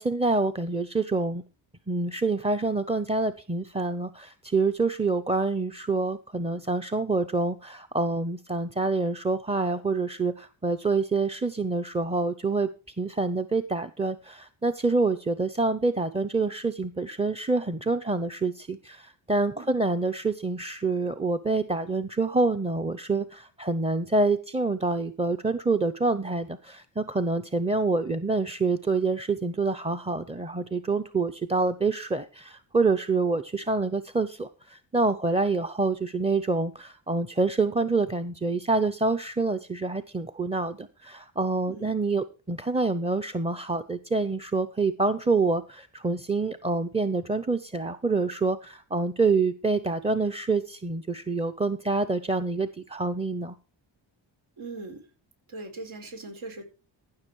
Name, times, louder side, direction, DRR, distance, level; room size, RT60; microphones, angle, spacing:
voice 1, 0.0-1.4 1.9-53.6, right 3 dB, 15° right, 8 dB, 0.6 m, -27 dB
voice 2, 54.6-55.0 55.5-56.6, right 3 dB, 80° right, 4 dB, 4.0 m, -40 dB
15.5 x 6.4 x 4.6 m, 0.34 s
cardioid pair, 110°, 47 cm